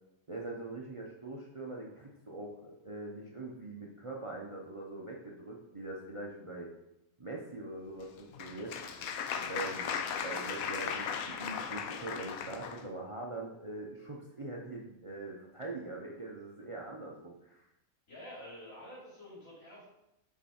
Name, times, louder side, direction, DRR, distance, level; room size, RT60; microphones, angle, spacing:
voice 1, 0.3-6.7 7.2-8.8 9.5-9.9 10.2-17.6, right 2 dB, 30° right, -2 dB, 0.6 m, -43 dB
sound 1, 7.6-13.3 13.7-13.8, equal, 30° left, 2.9 m, -62 dB
Applause, 8.0-12.8, left 7 dB, 90° left, 1.1 m, -37 dB
voice 2, 18.1-19.9, left 1 dB, 65° left, -7 dB, 3.4 m, -48 dB
5.9 x 5.0 x 4.2 m, 0.88 s
omnidirectional pair, 1.5 m